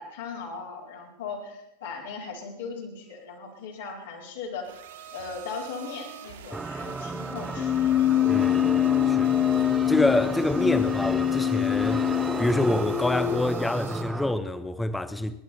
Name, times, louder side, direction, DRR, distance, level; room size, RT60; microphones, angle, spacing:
voice 1, 0.0-4.7 5.1-8.0, left 5 dB, 60° left, 4.3 m, -38 dB
sound 1, 4.6-14.0, right 8 dB, 60° right, 2.6 m, -44 dB
sound 2, 6.5-14.3, right 3 dB, 10° right, 0.5 m, -34 dB
Keyboard (musical), 7.5-13.5, left 12 dB, 30° left, 0.7 m, -24 dB
voice 2, 8.3-9.3 9.9-12.0 12.4-15.4, left 2 dB, 5° left, 1.0 m, -26 dB
29.5 x 10.5 x 4.4 m
figure-of-eight pair, 90°, 0 cm